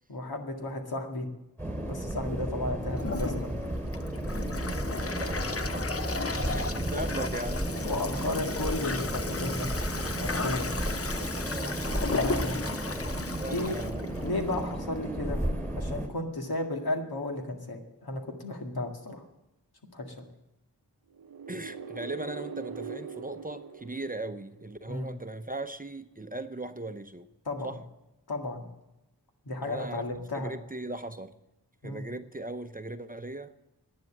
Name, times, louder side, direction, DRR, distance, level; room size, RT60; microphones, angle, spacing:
voice 1, 0.1-1.3 1.8-3.5 6.4-6.6 6.9-7.0 7.8-9.7 10.2-10.7 12.1-12.6 13.5-13.8 14.2-15.4 15.8-19.2 19.9-20.3 24.9-25.1 27.5-27.7 28.3-28.6 29.4-30.6 31.8-32.1, left 2 dB, 70° left, 2.1 m, -34 dB
sound 1, 1.6-16.1, right 1 dB, 5° left, 3.2 m, -33 dB
Toilet flush, 3.0-14.8, left 3 dB, 35° left, 0.8 m, -35 dB
voice 2, 4.6-5.9 6.1-7.7 11.4-12.3 13.3-14.0 21.5-27.3 27.6-27.8 29.6-30.0 30.3-31.4 31.8-33.5, right 2 dB, 20° right, 0.7 m, -39 dB
sound 2, 21.1-24.9, right 6 dB, 65° right, 0.7 m, -42 dB
11.0 x 9.4 x 7.4 m
cardioid pair, 45°, 38 cm